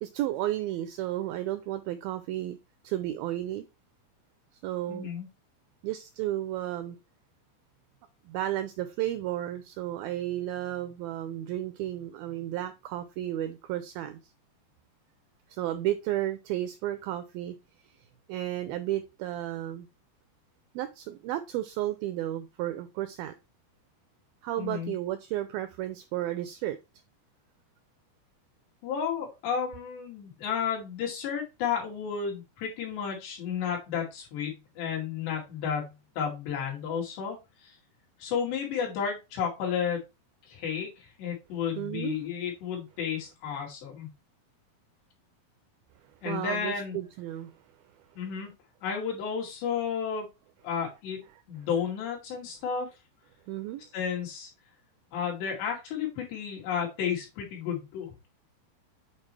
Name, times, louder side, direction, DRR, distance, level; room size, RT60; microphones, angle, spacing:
voice 1, 0.0-2.6 2.8-3.6 4.6-5.1 5.8-7.0 8.3-14.2 15.5-17.6 18.3-19.9 20.7-23.3 24.4-26.8 41.8-42.2 46.2-47.5 53.5-53.8, right 13 dB, 85° right, 10 dB, 2.1 m, -33 dB
voice 2, 4.9-5.3 24.6-24.9 28.8-37.8 38.2-40.0 40.5-44.1 46.2-47.0 48.2-48.5 48.8-50.3 50.6-51.2 51.5-52.9 53.9-54.5 55.1-58.1, left 7 dB, 85° left, -2 dB, 4.5 m, -32 dB
8.6 x 4.3 x 3.2 m, 0.25 s
omnidirectional pair, 4.8 m